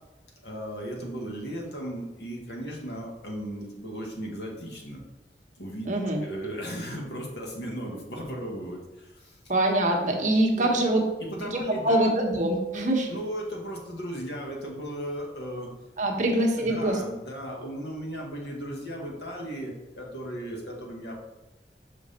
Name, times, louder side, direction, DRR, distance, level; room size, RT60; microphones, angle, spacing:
voice 1, 0.4-5.0 5.6-5.9 6.2-9.4 10.6-10.9 11.2-12.1 13.1-15.7 16.6-21.2, equal, 75° left, -1 dB, 1.8 m, -36 dB
voice 2, 5.9-6.2 9.5-11.0 11.5-13.1 16.0-17.0, right 1 dB, 45° right, 0 dB, 1.2 m, -24 dB
6.1 x 5.7 x 4.2 m, 1.0 s
head